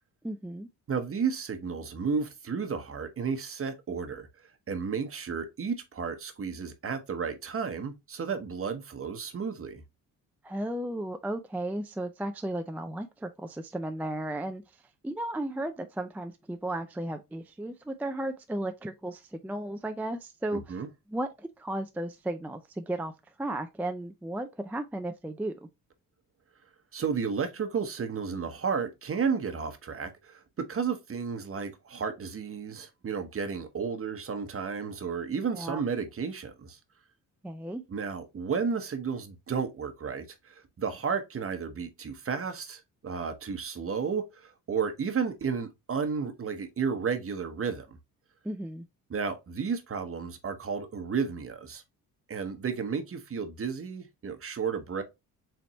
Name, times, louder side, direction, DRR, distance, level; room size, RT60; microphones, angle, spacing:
voice 1, 0.2-0.7 10.4-14.6 15.0-20.8 21.1-23.1 23.4-25.7 35.5-35.8 37.4-37.8 48.4-48.9, right 1 dB, 5° right, 0.4 m, -34 dB
voice 2, 0.9-4.3 4.7-9.8 20.5-20.9 26.9-36.8 37.9-47.9 49.1-51.8 52.3-55.0, right 6 dB, 40° right, 1.0 m, -32 dB
4.0 x 3.4 x 3.0 m
cardioid pair, 80°, 35 cm